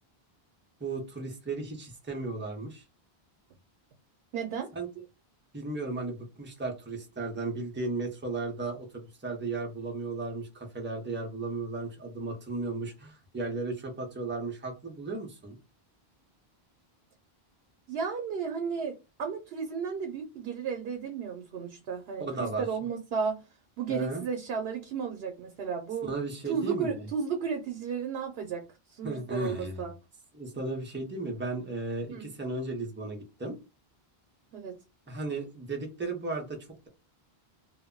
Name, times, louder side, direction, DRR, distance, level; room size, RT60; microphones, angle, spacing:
voice 1, 0.8-2.8 4.7-4.9 5.5-15.6 22.2-22.6 23.9-24.2 26.0-27.1 29.0-29.9 30.3-33.6 35.1-36.9, right 3 dB, 15° right, 0.5 m, -35 dB
voice 2, 4.3-4.7 17.9-23.4 23.8-26.1 26.4-29.9 32.1-32.3 34.5-34.8, right 6 dB, 80° right, 0.8 m, -33 dB
2.2 x 2.1 x 3.6 m
omnidirectional pair, 1.0 m